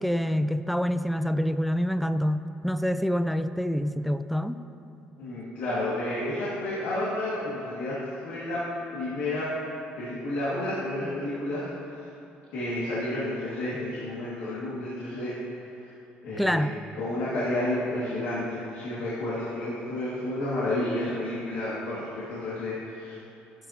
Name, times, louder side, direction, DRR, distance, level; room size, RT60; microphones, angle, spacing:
voice 1, 0.0-4.6 16.4-16.8, equal, ahead, 0.4 m, -26 dB
voice 2, 5.2-8.0 8.2-8.6 8.9-9.5 10.0-12.1 12.5-15.4 15.8-15.9 16.2-16.7 17.0-23.1, left 1 dB, 85° left, 2.2 m, -31 dB
12.0 x 11.0 x 2.9 m
cardioid pair, 90°, 4 cm